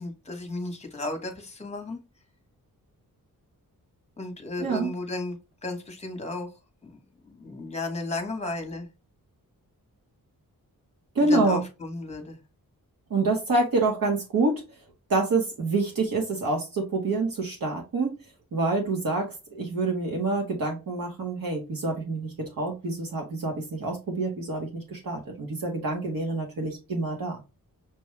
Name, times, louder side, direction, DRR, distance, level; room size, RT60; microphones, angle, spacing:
voice 1, 0.0-2.0 4.2-6.5 6.8-8.9 11.3-12.4, left 2 dB, 20° left, 1.1 m, -34 dB
voice 2, 11.1-11.6 13.1-14.6 15.1-18.2 18.5-27.4, right 3 dB, 70° right, 1.1 m, -27 dB
6.0 x 2.3 x 3.1 m
wide cardioid pair, 165°, 36 cm